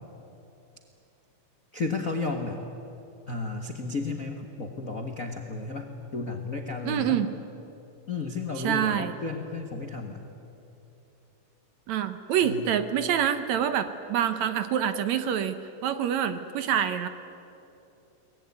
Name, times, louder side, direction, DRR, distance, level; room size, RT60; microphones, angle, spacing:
voice 1, 1.7-2.6 3.3-7.2 8.1-10.2 12.4-12.7, left 3 dB, 45° left, 2 dB, 1.0 m, -33 dB
voice 2, 6.9-7.3 8.6-9.1 11.9-17.1, right 9 dB, 70° right, 10 dB, 2.1 m, -26 dB
23.5 x 19.5 x 9.6 m, 2.9 s
omnidirectional pair, 3.6 m